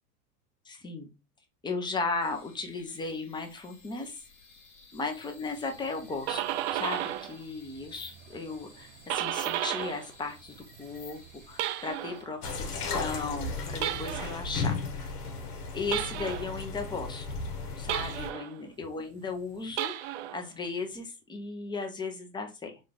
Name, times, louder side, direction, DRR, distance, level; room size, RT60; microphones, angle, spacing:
voice 1, 0.7-1.1 1.6-4.2 4.9-6.4 6.7-11.2 11.5-12.6 12.9-14.8 15.7-17.3 17.8-22.8, left 4 dB, 10° left, 4 dB, 0.6 m, -36 dB
sound 1, 2.2-12.2, left 4 dB, 30° left, 1.0 m, -55 dB
sound 2, 5.9-7.4 7.7-10.1 10.4-12.3 13.7-14.5 15.9-16.6 17.9-18.6 19.7-20.4, right 13 dB, 50° right, 0.4 m, -33 dB
sound 3, 12.4-18.3, left 3 dB, 85° left, 1.1 m, -35 dB
3.9 x 2.4 x 3.4 m, 0.27 s
hypercardioid pair, 115°, 45 cm